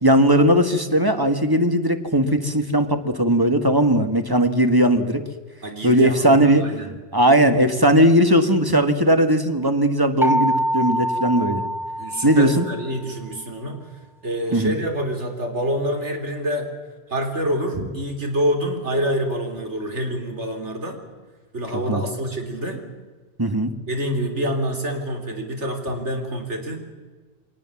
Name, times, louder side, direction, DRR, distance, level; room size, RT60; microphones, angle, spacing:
voice 1, 0.0-5.2 5.8-6.6 7.1-11.6 12.2-12.6 14.5-14.7 21.9-22.0 23.4-23.7, right 1 dB, 20° right, 7 dB, 1.7 m, -18 dB
voice 2, 5.6-7.0 12.0-13.8 14.2-16.7 17.1-21.0 21.5-22.9 23.9-26.9, equal, 75° right, 5 dB, 3.8 m, -26 dB
sound 1, 10.2-13.0, equal, 5° right, 0.6 m, -24 dB
23.5 x 19.0 x 7.2 m, 1.4 s
omnidirectional pair, 1.2 m